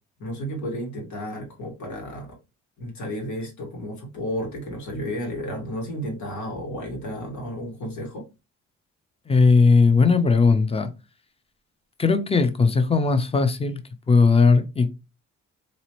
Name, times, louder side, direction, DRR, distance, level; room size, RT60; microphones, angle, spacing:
voice 1, 0.2-2.4 2.8-8.3, equal, 75° left, 1.8 m, -32 dB
voice 2, 9.3-10.9 12.0-13.8 14.1-14.9, left 4 dB, 20° left, 0.7 m, -18 dB
4.1 x 2.7 x 3.0 m
cardioid pair, 90°, 30 cm